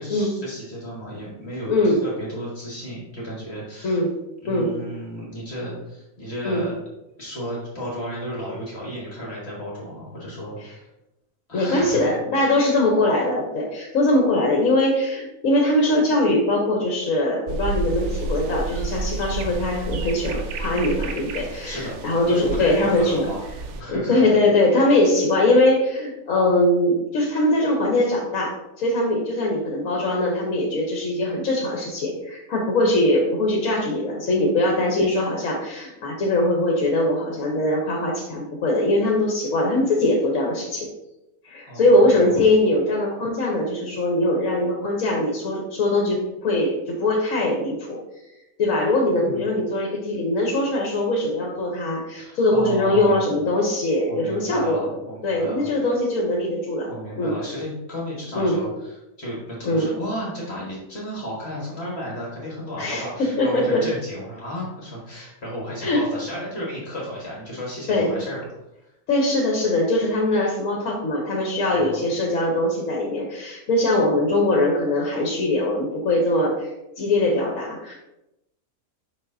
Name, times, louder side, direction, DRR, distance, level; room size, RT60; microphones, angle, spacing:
voice 1, 0.0-4.0 4.4-6.7 7.2-10.9 11.5-12.1 21.6-21.9 22.3-23.4 23.7-24.3 41.7-42.4 49.1-49.5 52.2-53.3 54.1-55.7 56.9-68.4 71.7-72.0 73.8-74.0, equal, 45° left, -5 dB, 1.7 m, -33 dB
voice 2, 1.7-2.0 3.8-4.1 4.5-4.7 6.4-6.7 11.5-23.3 23.9-28.5 28.8-40.9 41.4-48.0 48.6-54.9 55.2-56.9 57.2-57.4 58.3-58.6 59.6-59.9 62.8-63.0 63.4-63.8 65.8-66.0 67.9-68.2 69.1-76.7 77.0-77.9, left 1 dB, 65° left, -1 dB, 1.4 m, -21 dB
sound 1, 17.5-23.8, right 3 dB, 65° right, 0.8 m, -30 dB
6.4 x 5.5 x 2.7 m, 0.93 s
omnidirectional pair, 1.5 m